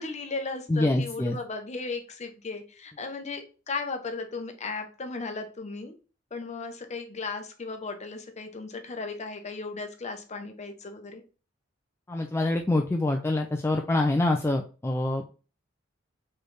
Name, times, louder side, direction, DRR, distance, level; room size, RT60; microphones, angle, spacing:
voice 1, 0.0-5.9 6.3-11.2, left 4 dB, 35° left, 6 dB, 0.7 m, -36 dB
voice 2, 0.7-1.4 12.1-15.3, left 2 dB, 15° left, 2 dB, 0.3 m, -25 dB
4.4 x 3.2 x 3.2 m, 0.35 s
head